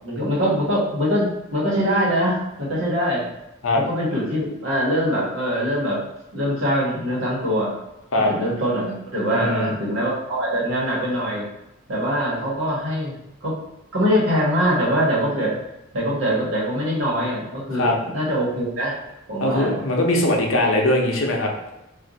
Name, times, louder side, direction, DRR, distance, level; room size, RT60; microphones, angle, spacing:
voice 1, 0.0-3.3 3.9-6.0 6.3-7.7 8.2-11.4 11.9-13.2 13.4-13.5 13.9-15.5 15.9-18.9 19.3-19.9, equal, 70° right, -6 dB, 1.3 m, -23 dB
voice 2, 9.3-9.7 17.7-17.9 19.4-21.5, left 1 dB, 75° left, 0 dB, 0.7 m, -20 dB
2.5 x 2.5 x 3.9 m, 0.91 s
head